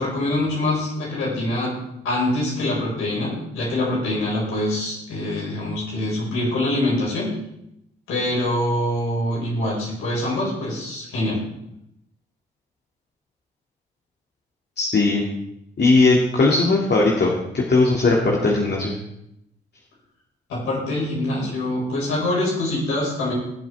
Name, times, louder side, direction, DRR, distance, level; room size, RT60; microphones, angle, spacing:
voice 1, 0.0-1.7 2.0-7.3 8.1-11.4 20.5-23.3, left 1 dB, 80° left, -5 dB, 5.2 m, -24 dB
voice 2, 14.8-15.2 15.8-19.0, left 3 dB, 50° left, -2 dB, 2.4 m, -18 dB
20.0 x 7.9 x 3.5 m, 0.80 s
hypercardioid pair, 40°, 21 cm